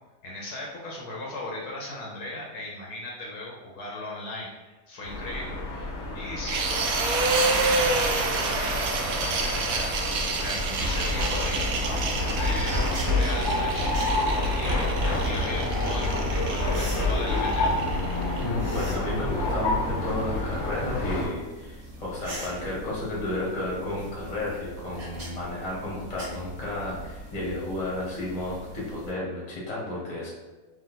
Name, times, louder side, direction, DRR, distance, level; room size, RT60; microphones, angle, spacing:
voice 1, 0.2-9.9 10.4-17.8 21.8-21.9, left 1 dB, 70° left, -3 dB, 1.2 m, -37 dB
sound 1, 5.0-21.3, left 2 dB, 50° left, 1.0 m, -28 dB
sound 2, 6.5-18.4, right 3 dB, 70° right, 0.9 m, -29 dB
sound 3, 10.5-29.1, right 2 dB, 50° right, 1.3 m, -42 dB
voice 2, 18.4-30.3, left 2 dB, 25° left, -5 dB, 1.1 m, -32 dB
3.4 x 2.7 x 4.0 m, 1.2 s
omnidirectional pair, 1.8 m